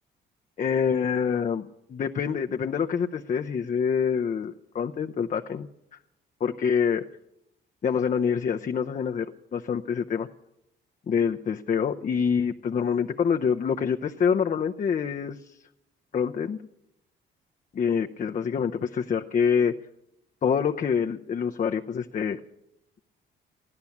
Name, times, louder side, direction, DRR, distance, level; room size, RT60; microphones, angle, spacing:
voice 1, 0.6-5.7 6.4-7.0 7.8-9.3 9.5-10.3 11.1-15.5 16.1-16.6 17.7-19.7 20.4-22.4, left 6 dB, 40° left, 4 dB, 0.6 m, -26 dB
14.5 x 12.0 x 7.1 m, 0.85 s
cardioid pair, 90°, 20 cm